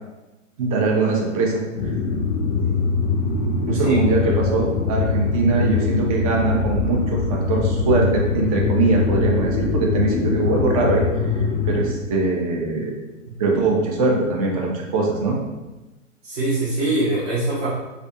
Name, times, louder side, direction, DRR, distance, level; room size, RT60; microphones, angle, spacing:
voice 1, 0.6-1.9 2.5-2.9 3.7-11.0 11.6-12.9 13.4-15.4, right 3 dB, 30° right, -1 dB, 0.4 m, -22 dB
sound 1, 1.8-11.9, left 4 dB, 40° left, 0.4 m, -22 dB
voice 2, 3.7-4.3 16.2-17.7, right 2 dB, 55° right, -8 dB, 0.8 m, -24 dB
2.4 x 2.3 x 2.5 m, 1.1 s
figure-of-eight pair, 105°, 39 cm